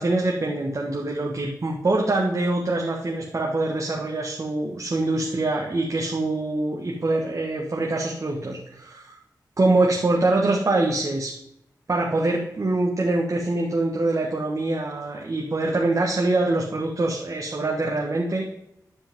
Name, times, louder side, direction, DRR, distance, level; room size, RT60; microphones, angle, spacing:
voice 1, 0.0-9.2 9.6-11.3 11.9-18.5, right 2 dB, 50° right, -1 dB, 1.5 m, -24 dB
12.0 x 5.2 x 3.7 m, 0.77 s
cardioid pair, 65°, 7 cm